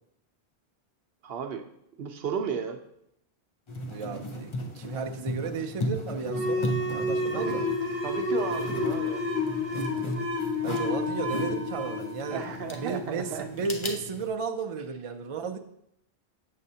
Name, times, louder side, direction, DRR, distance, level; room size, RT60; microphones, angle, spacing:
voice 1, 1.2-1.6 2.0-2.8 7.3-7.6 8.0-9.2 12.3-13.4, right 6 dB, 65° right, 6 dB, 0.8 m, -33 dB
sound 1, 3.7-14.3, left 1 dB, 35° left, 0.5 m, -36 dB
voice 2, 3.9-7.6 10.6-15.6, right 5 dB, 50° right, 4 dB, 0.4 m, -34 dB
sound 2, 6.2-13.5, left 2 dB, 75° left, 2.2 m, -30 dB
7.5 x 6.5 x 2.7 m, 0.77 s
omnidirectional pair, 1.1 m